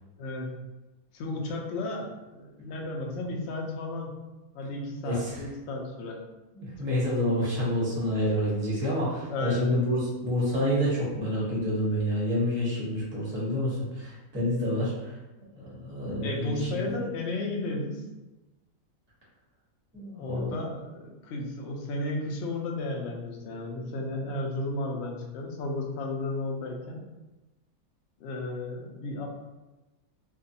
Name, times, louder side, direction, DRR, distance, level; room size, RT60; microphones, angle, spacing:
voice 1, 0.2-0.5 1.1-4.2 4.5-6.2 9.3-9.7 16.2-18.0 20.2-27.0 28.2-29.3, left 2 dB, 80° left, 0 dB, 0.6 m, -33 dB
voice 2, 5.0-5.4 6.5-15.2 15.6-17.0 19.9-20.6, equal, 15° right, -7 dB, 0.5 m, -28 dB
2.5 x 2.3 x 2.6 m, 1.1 s
omnidirectional pair, 1.6 m